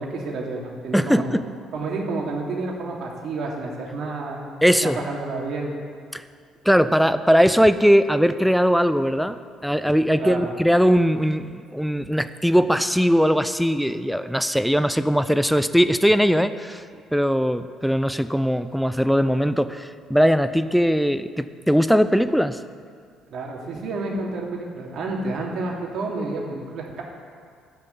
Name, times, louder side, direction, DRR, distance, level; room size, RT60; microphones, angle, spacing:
voice 1, 0.0-1.4 1.7-4.4 4.8-5.7 10.2-10.5 23.3-27.0, right 3 dB, 65° right, -1 dB, 2.9 m, -30 dB
voice 2, 0.9-1.5 4.6-5.0 6.1-6.2 6.6-16.8 17.1-22.6, equal, ahead, 11 dB, 0.7 m, -20 dB
12.5 x 6.6 x 9.2 m, 2.2 s
supercardioid pair, 70°, 0 cm